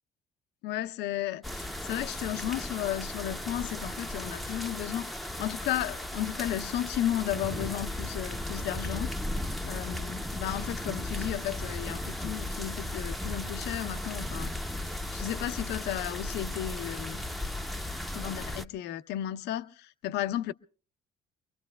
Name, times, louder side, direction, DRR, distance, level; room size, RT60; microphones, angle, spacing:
voice 1, 0.6-9.1 9.6-14.5 15.1-17.2 18.1-20.5, left 12 dB, 85° left, 0.7 m, -34 dB
sound 1, 1.4-18.7, left 1 dB, ahead, 0.7 m, -36 dB
25.0 x 23.5 x 2.3 m
cardioid pair, 110°, 17 cm